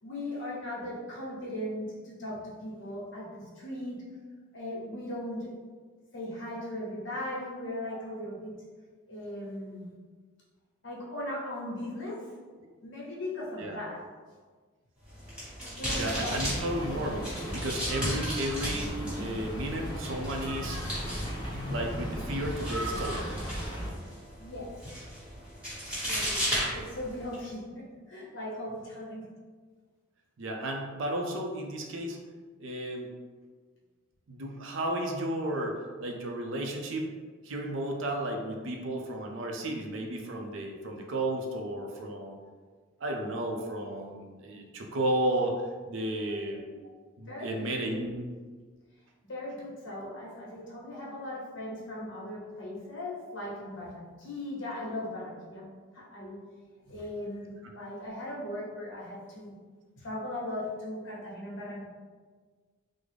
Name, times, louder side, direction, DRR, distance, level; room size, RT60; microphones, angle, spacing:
voice 1, 0.0-4.0 4.5-5.5 6.1-8.5 9.1-9.9 10.8-12.3 12.5-14.0 15.8-16.4 24.4-24.7 26.1-29.3 46.1-46.4 47.3-47.7 49.3-55.7 55.9-56.4 56.9-59.5 60.0-61.9, left 1 dB, 60° left, -5 dB, 0.9 m, -38 dB
sound 1, 15.0-27.4, equal, 5° right, 1.1 m, -36 dB
sound 2, 15.9-23.9, equal, 20° left, 0.5 m, -36 dB
voice 2, 15.9-20.8 21.7-23.3 30.4-32.2 32.6-33.1 34.3-37.1 37.4-42.4 43.0-45.6 45.9-46.6 47.2-48.2, right 1 dB, 65° right, 2 dB, 0.5 m, -33 dB
3.6 x 2.0 x 3.3 m, 1.5 s
head